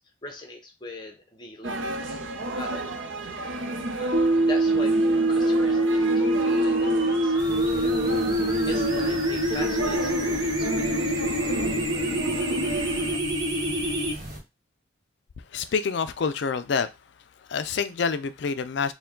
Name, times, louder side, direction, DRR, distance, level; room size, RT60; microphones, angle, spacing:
voice 1, 0.2-2.2 2.6-2.9 3.2-3.3 4.0-5.0 5.3-8.0 8.4-11.6, left 2 dB, 20° left, 0.8 m, -41 dB
sound 1, 1.6-13.2, right 2 dB, 65° right, 0.6 m, -32 dB
sound 2, 4.1-14.1, right 1 dB, 20° right, 0.6 m, -24 dB
sound 3, 7.4-14.4, right 1 dB, 40° right, 1.4 m, -39 dB
voice 2, 15.5-16.9 17.5-18.9, left 5 dB, 55° left, 0.4 m, -27 dB
4.5 x 2.2 x 3.7 m
head